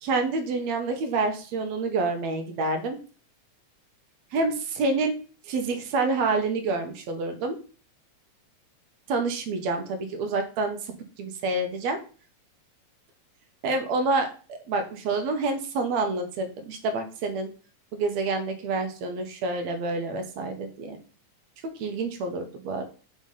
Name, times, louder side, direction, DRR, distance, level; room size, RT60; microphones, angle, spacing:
voice 1, 0.0-3.0 4.3-5.2 5.5-7.6 9.1-10.8 11.2-12.0 13.6-17.5 17.9-21.0 21.8-22.9, right 3 dB, 70° right, 6 dB, 2.1 m, -28 dB
6.6 x 3.4 x 5.5 m, 0.38 s
omnidirectional pair, 3.5 m